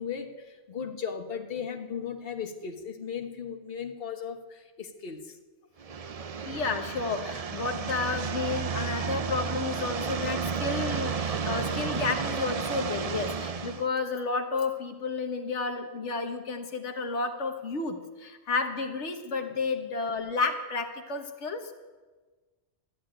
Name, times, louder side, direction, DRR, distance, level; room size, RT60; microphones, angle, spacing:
voice 1, 0.0-5.4, left 7 dB, 55° left, 4 dB, 1.5 m, -36 dB
sound 1, 5.8-13.8, right 6 dB, 40° right, 0.6 m, -32 dB
voice 2, 6.4-21.7, left 4 dB, 90° left, 5 dB, 1.5 m, -31 dB
13.5 x 12.0 x 8.9 m, 1.3 s
omnidirectional pair, 1.2 m